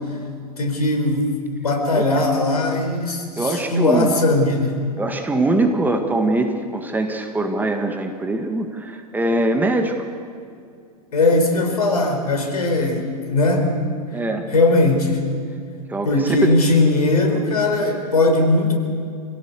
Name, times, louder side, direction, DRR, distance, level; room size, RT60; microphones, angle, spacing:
voice 1, 0.6-1.2 1.6-4.8 11.1-13.8 14.5-15.3 16.0-18.7, left 2 dB, 70° left, 4 dB, 4.6 m, -19 dB
voice 2, 3.4-4.2 5.0-10.0 14.1-14.5 15.9-16.5, right 2 dB, 10° right, 4 dB, 1.8 m, -22 dB
27.5 x 17.0 x 7.0 m, 2.4 s
figure-of-eight pair, 100°, 20 cm